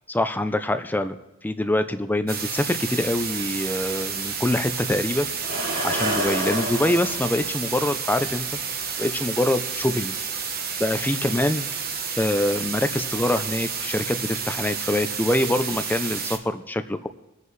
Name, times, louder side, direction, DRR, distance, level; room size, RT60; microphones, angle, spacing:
voice 1, 0.1-5.3 5.8-8.5 9.0-10.1 10.8-11.7 12.2-17.1, left 1 dB, 10° left, 10 dB, 0.4 m, -25 dB
sound 1, 2.3-16.4, right 6 dB, 45° right, 1.0 m, -30 dB
sound 2, 5.4-7.2 8.4-8.5 9.0-9.2, right 1 dB, 75° right, 3.0 m, -28 dB
22.5 x 8.2 x 3.2 m, 1.0 s
head